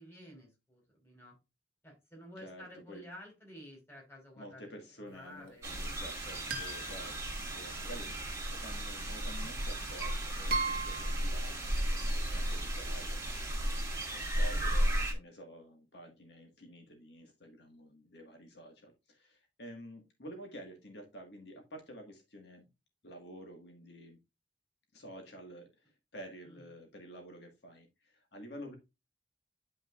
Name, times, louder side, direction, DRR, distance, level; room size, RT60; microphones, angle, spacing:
voice 1, 0.0-1.4 1.8-5.7 14.3-14.7 26.4-26.7, equal, 15° left, 4.0 m, -52 dB
voice 2, 2.4-3.0 4.4-13.7 14.1-22.7 23.0-24.2 24.9-28.8, equal, 65° left, 1.7 m, -50 dB
sound 1, 5.6-15.1, right 1 dB, 15° right, 2.2 m, -34 dB
sound 2, 6.5-8.0 9.4-9.5 10.5-11.3, right 3 dB, 55° right, 1.4 m, -37 dB
10.0 x 5.6 x 2.4 m
head